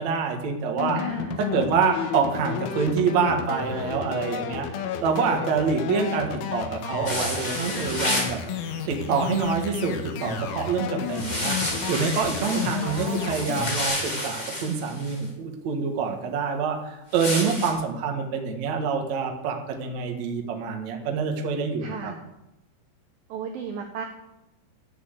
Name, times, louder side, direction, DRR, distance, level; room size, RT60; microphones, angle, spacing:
voice 1, 0.0-1.0 1.4-8.4 8.9-22.1, right 5 dB, 65° right, 3 dB, 1.8 m, -26 dB
sound 1, 0.8-13.9, left 7 dB, 85° left, 3.6 m, -32 dB
voice 2, 0.9-1.4 12.8-13.5 21.8-22.2 23.3-24.1, right 6 dB, 80° right, 4 dB, 2.0 m, -35 dB
sound 2, 7.0-8.4 11.1-15.2 17.1-17.7, left 1 dB, 25° left, 1.0 m, -30 dB
Sliding door, 7.3-9.6 11.4-12.4, right 3 dB, 50° right, 3.5 m, -47 dB
13.5 x 7.0 x 8.1 m, 0.90 s
omnidirectional pair, 5.6 m